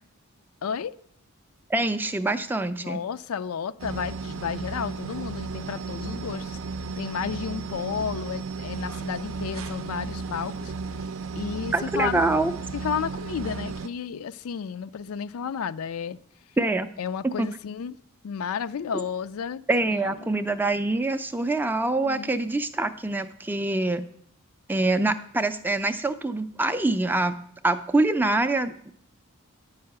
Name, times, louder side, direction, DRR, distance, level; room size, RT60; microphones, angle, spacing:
voice 1, 0.6-1.0 2.8-6.6 7.0-10.7 11.4-12.2 12.7-16.2 17.0-17.9 18.2-20.3 21.9-22.3, left 7 dB, 80° left, 0.4 m, -32 dB
voice 2, 1.7-3.0 11.7-12.5 16.6-16.9 17.4-17.5 19.7-24.0 24.7-27.4 27.6-28.9, right 2 dB, 10° right, 0.4 m, -25 dB
sound 1, 3.8-13.9, right 4 dB, 65° right, 0.5 m, -34 dB
10.5 x 5.6 x 7.8 m
head